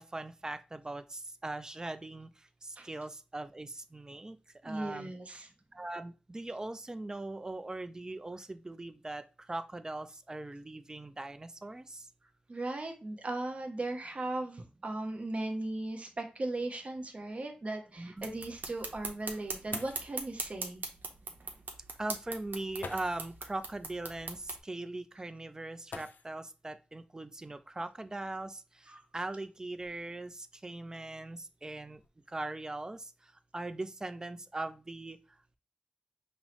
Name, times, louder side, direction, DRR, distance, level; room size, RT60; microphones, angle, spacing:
voice 1, 0.0-2.3 2.6-4.4 4.6-5.1 5.7-9.2 9.5-12.0 18.0-18.3 22.0-28.6 29.1-32.0 32.3-33.1 33.5-35.2, right 2 dB, 20° right, 11 dB, 0.3 m, -40 dB
voice 2, 4.6-5.5 12.5-20.8 28.9-29.1, right 2 dB, 40° right, 4 dB, 0.7 m, -37 dB
sound 1, 15.8-15.9 16.3-16.4 17.0-17.1 19.4-19.5 19.7-20.3 21.5-21.6 22.8-23.4 25.8-26.6 28.0-28.1 28.8-30.3 31.0-31.3 31.7-32.1, left 4 dB, 85° left, 0.4 m, -48 dB
sound 2, 18.2-24.6, right 3 dB, 85° right, 0.7 m, -41 dB
5.3 x 2.0 x 3.0 m, 0.33 s
wide cardioid pair, 105°, 3 cm